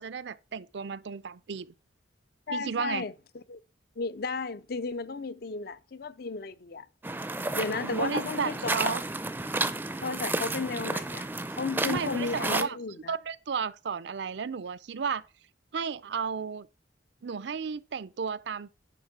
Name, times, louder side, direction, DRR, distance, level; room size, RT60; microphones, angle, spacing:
voice 1, 0.0-1.7 2.5-3.0 7.8-9.0 11.9-12.8 13.1-15.2 15.7-16.7 17.2-18.7, right 6 dB, 65° right, 0.5 m, -33 dB
voice 2, 2.5-3.6 4.0-6.9 7.5-9.0 10.0-11.3 11.6-13.1, left 4 dB, 55° left, 0.5 m, -34 dB
sound 1, 7.0-12.6, right 2 dB, 10° right, 0.5 m, -32 dB
10.5 x 3.6 x 5.9 m
head